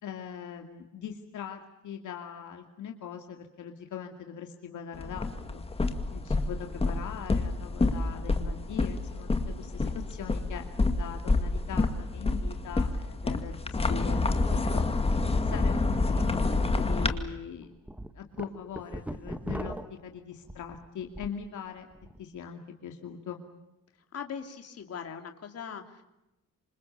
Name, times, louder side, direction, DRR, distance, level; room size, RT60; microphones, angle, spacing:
voice 1, 0.0-14.2 14.5-14.8 15.4-17.7 18.1-21.9 22.2-23.4, left 8 dB, 60° left, 4 dB, 2.5 m, -41 dB
sound 1, 4.9-17.1, left 3 dB, 20° left, 2.1 m, -28 dB
sound 2, 15.8-15.9 16.3-16.4 17.0-17.2 17.6-21.4 21.8-22.2, right 1 dB, 5° right, 1.3 m, -39 dB
voice 2, 24.1-26.0, left 7 dB, 45° left, 6 dB, 3.1 m, -40 dB
27.5 x 26.5 x 7.0 m, 0.95 s
cardioid pair, 160°, 33 cm